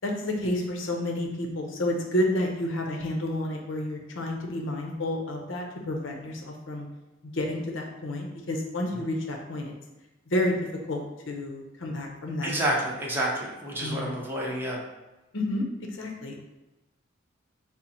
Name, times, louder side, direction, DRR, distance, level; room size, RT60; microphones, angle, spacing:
voice 1, 0.0-6.9 7.2-9.7 10.3-10.5 10.9-12.6 13.8-14.1 15.3-15.7 15.9-16.4, left 1 dB, 75° left, 1 dB, 0.7 m, -30 dB
voice 2, 12.4-14.8, right 1 dB, 10° right, -4 dB, 0.7 m, -29 dB
4.3 x 2.0 x 3.9 m, 1.1 s
head